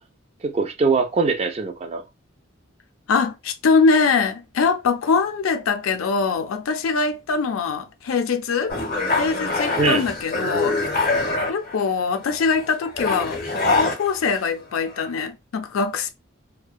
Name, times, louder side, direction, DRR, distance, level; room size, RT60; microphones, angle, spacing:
voice 1, 0.4-2.0 9.8-10.0, right 4 dB, 30° right, 0.4 m, -22 dB
voice 2, 3.1-8.7 9.2-10.8 11.5-13.4 13.8-16.1, left 4 dB, 85° left, 0.4 m, -22 dB
sound 1, 8.7-11.9 12.2-14.6 14.9-15.3, left 3 dB, 50° left, 0.7 m, -24 dB
2.5 x 2.1 x 2.3 m
head